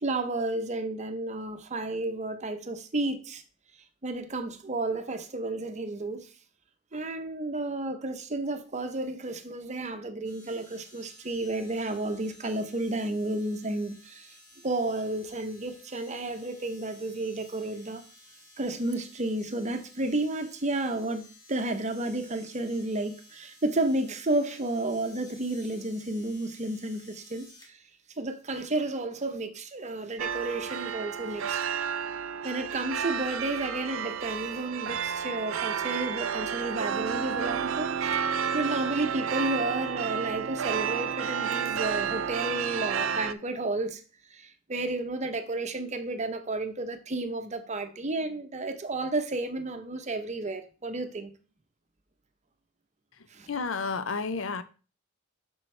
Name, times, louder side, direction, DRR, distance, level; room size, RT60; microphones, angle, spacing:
voice 1, 0.0-3.4 4.0-6.3 6.9-14.4 14.6-18.0 18.6-27.8 28.2-31.7 32.4-38.2 38.5-44.0 44.3-51.3 53.3-53.5, right 2 dB, 35° right, 0.8 m, -32 dB
sound 1, 10.2-27.7 28.6-28.7, left 1 dB, 20° left, 2.3 m, -55 dB
sound 2, 30.2-43.3, right 7 dB, 80° right, 0.5 m, -31 dB
voice 2, 53.5-54.6, left 4 dB, 70° left, 0.7 m, -31 dB
8.0 x 6.3 x 3.3 m
head